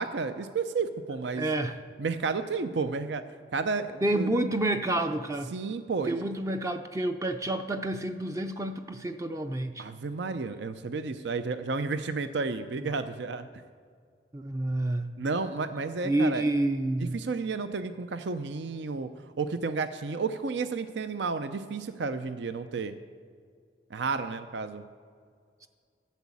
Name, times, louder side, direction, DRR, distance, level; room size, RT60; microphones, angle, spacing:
voice 1, 0.0-1.6 2.0-3.2 3.5-4.3 5.5-6.3 9.8-13.5 15.2-16.4 17.1-19.1 19.4-22.9 23.9-24.8, right 4 dB, 70° right, 11 dB, 0.5 m, -32 dB
voice 2, 1.4-1.8 4.0-5.5 6.0-9.9 12.8-12.9 14.3-15.1 16.0-17.2 25.6-25.7, right 1 dB, 15° right, 7 dB, 0.4 m, -29 dB
12.5 x 7.1 x 8.4 m, 2.1 s
head